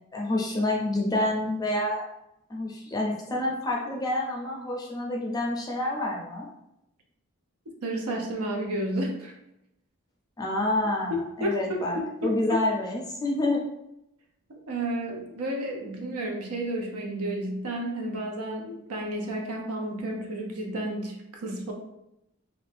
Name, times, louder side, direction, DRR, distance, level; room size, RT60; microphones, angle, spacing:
voice 1, 0.1-2.0 2.5-6.5 10.4-13.6, left 1 dB, 15° left, -2 dB, 0.4 m, -28 dB
voice 2, 7.8-9.3 11.1-12.6 14.5-21.7, right 1 dB, 85° right, 1 dB, 0.6 m, -31 dB
2.6 x 2.1 x 3.3 m, 0.84 s
head